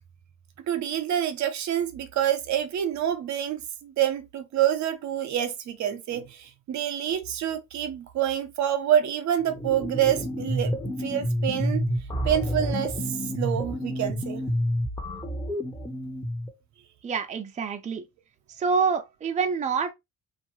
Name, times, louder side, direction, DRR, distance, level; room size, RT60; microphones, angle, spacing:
voice 1, 0.7-11.8 12.2-14.4, right 10 dB, 70° right, 0.6 m, -27 dB
sound 1, 9.4-16.5, equal, 10° left, 0.7 m, -29 dB
voice 2, 17.0-18.0 18.6-19.9, right 5 dB, 25° right, 0.4 m, -26 dB
2.5 x 2.3 x 2.9 m
cardioid pair, 90°, 30 cm